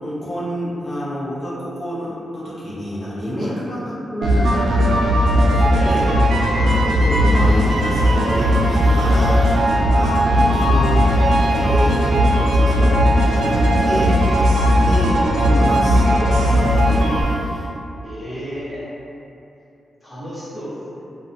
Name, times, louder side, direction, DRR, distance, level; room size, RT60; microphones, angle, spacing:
voice 1, 0.0-5.0 5.3-6.2 6.7-10.3 10.5-14.2 14.7-17.1, equal, 45° left, -10 dB, 0.6 m, -28 dB
sound 1, 4.2-17.2, equal, 85° right, 0.4 m, -16 dB
voice 2, 5.7-6.1 6.6-6.8 9.8-10.0 14.5-14.8 18.0-18.9 20.0-21.0, equal, 10° left, -10 dB, 0.7 m, -33 dB
Drill, 7.3-9.5 10.3-12.5 13.2-15.1 16.3-17.7, equal, 25° right, 0.8 m, -32 dB
2.7 x 2.1 x 2.5 m, 2.7 s
wide cardioid pair, 130°, 0 cm